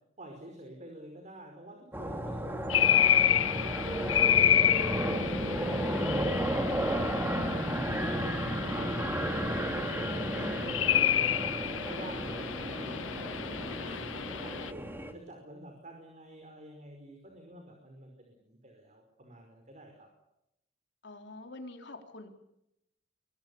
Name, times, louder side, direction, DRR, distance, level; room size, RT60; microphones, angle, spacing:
voice 1, 0.2-7.5 7.9-11.5 11.8-14.8 15.1-20.1, right 1 dB, 40° right, 3 dB, 5.3 m, -49 dB
sound 1, 1.9-15.1, right 1 dB, 10° right, 3.0 m, -33 dB
sound 2, 2.7-14.7, left 10 dB, 85° left, 0.9 m, -29 dB
voice 2, 10.3-10.9 13.7-14.1 21.0-22.3, left 2 dB, 60° left, 5 dB, 4.1 m, -47 dB
25.0 x 22.5 x 7.2 m, 0.83 s
head